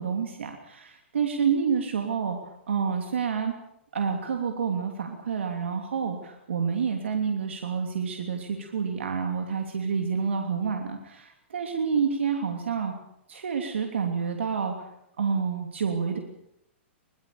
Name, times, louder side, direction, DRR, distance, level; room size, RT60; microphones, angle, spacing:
voice 1, 0.0-3.5 3.9-12.9 13.3-14.9 15.2-16.2, right 6 dB, 75° right, 4 dB, 3.0 m, -28 dB
23.0 x 21.5 x 7.1 m, 0.77 s
hypercardioid pair, 115°, 6 cm